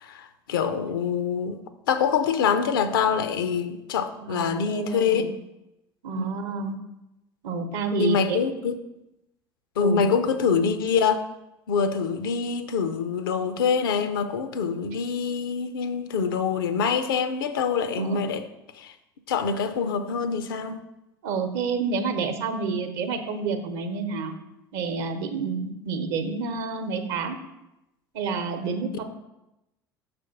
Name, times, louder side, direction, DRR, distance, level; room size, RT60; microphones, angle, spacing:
voice 1, 0.0-1.6 1.9-5.3 6.2-6.3 8.0-8.7 9.8-11.2 11.7-18.5 18.7-18.9 19.3-20.8, left 6 dB, 70° left, 0.5 m, -25 dB
voice 2, 4.2-5.3 6.0-6.8 7.4-8.4 9.8-10.0 18.0-18.3 21.2-24.4 24.7-27.4 28.1-29.0, right 5 dB, 65° right, 0.8 m, -29 dB
6.0 x 3.4 x 5.8 m
figure-of-eight pair, 65°, 12 cm